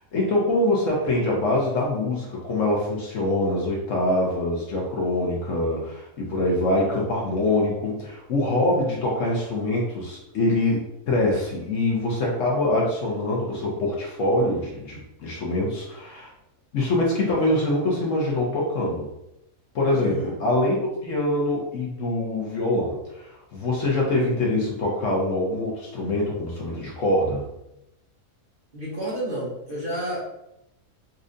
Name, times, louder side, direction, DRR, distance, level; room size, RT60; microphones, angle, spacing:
voice 1, 0.1-16.3 16.7-19.1 19.7-20.8 21.0-27.4, left 1 dB, 60° left, -3 dB, 1.0 m, -24 dB
voice 2, 19.9-20.4 28.7-30.2, right 1 dB, 40° right, -6 dB, 1.0 m, -30 dB
4.2 x 2.5 x 2.6 m, 0.86 s
omnidirectional pair, 1.7 m